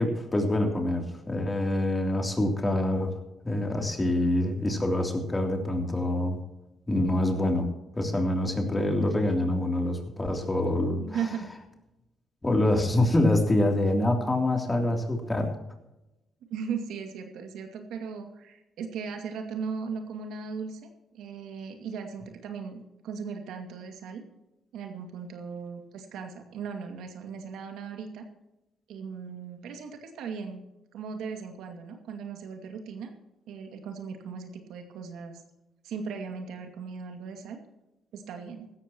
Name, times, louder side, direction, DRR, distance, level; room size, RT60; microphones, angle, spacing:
voice 1, 0.0-3.2 3.4-6.4 6.9-7.7 7.9-11.2 12.4-15.5, left 1 dB, 20° left, 3 dB, 3.2 m, -26 dB
voice 2, 11.0-11.5 16.5-20.8 21.1-24.2 24.7-28.2 28.9-30.6 30.9-33.1 33.5-35.4 35.8-37.6 38.1-38.7, right 6 dB, 85° right, 5 dB, 2.3 m, -37 dB
16.5 x 13.5 x 3.0 m, 0.95 s
cardioid pair, 90°, 0 cm